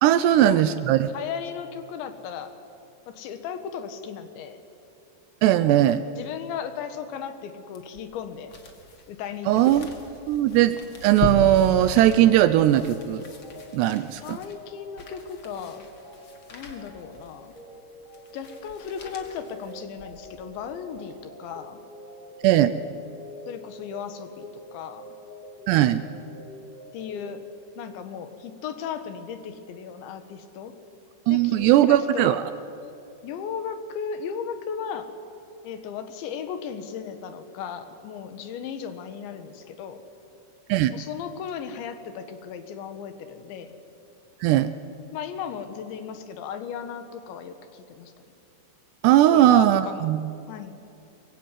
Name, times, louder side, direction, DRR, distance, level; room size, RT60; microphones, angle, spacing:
voice 1, 0.0-1.1 5.4-6.0 9.5-9.9 10.3-13.2 13.7-14.4 22.4-22.7 25.7-26.0 31.3-32.4 40.7-40.9 44.4-44.7 49.0-50.2, right 13 dB, 80° right, 12 dB, 2.6 m, -19 dB
voice 2, 1.1-2.5 3.1-4.6 6.2-8.5 9.1-9.6 14.2-15.9 16.5-17.5 18.3-21.8 23.5-24.4 24.7-25.2 26.9-27.5 27.8-30.7 31.3-32.4 33.2-35.1 35.6-40.0 40.9-43.8 45.1-48.1 49.3-50.1 50.5-50.8, left 7 dB, 75° left, 9 dB, 3.7 m, -36 dB
sound 1, 7.7-20.4 20.9-21.0, left 3 dB, 40° left, 1.9 m, -38 dB
sound 2, 11.4-28.0, equal, 15° left, 1.4 m, -46 dB
23.0 x 22.5 x 9.8 m, 2.7 s
omnidirectional pair, 5.4 m